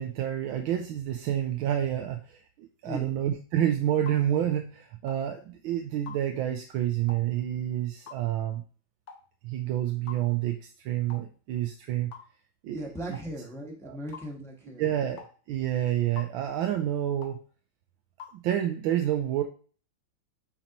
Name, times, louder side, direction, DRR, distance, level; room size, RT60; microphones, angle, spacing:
voice 1, 0.0-8.6 9.4-12.1 12.6-13.2 13.8-14.0 14.8-17.4 18.4-19.4, right 11 dB, 85° right, 4 dB, 1.4 m, -29 dB
sound 1, 4.1-4.2 5.1-5.2 6.1-6.2 7.1-7.3 8.1-8.2 9.1-9.3 10.1-10.2 11.1-11.3 12.1-12.3 13.1-13.3 14.1-14.3 15.2-15.3 16.2-16.3 17.2-17.4 18.2-18.4, left 7 dB, 60° left, 1.1 m, -45 dB
voice 2, 12.7-14.9, equal, ahead, 0 dB, 0.9 m, -38 dB
8.6 x 4.0 x 2.9 m, 0.40 s
omnidirectional pair, 2.2 m